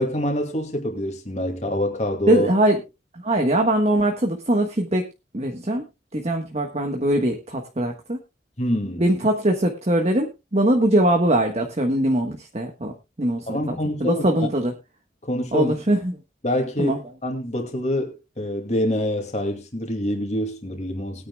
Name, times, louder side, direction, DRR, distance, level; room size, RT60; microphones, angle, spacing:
voice 1, 0.0-2.5 8.6-9.0 13.5-14.3 15.2-15.7 16.4-21.3, left 1 dB, 40° left, 2.3 m, -26 dB
voice 2, 2.3-2.8 3.1-5.1 5.3-5.8 6.1-8.2 9.0-12.9 13.2-14.7 15.5-16.2 16.8-17.0, right 1 dB, 40° right, 1.3 m, -21 dB
20.5 x 9.6 x 2.3 m
head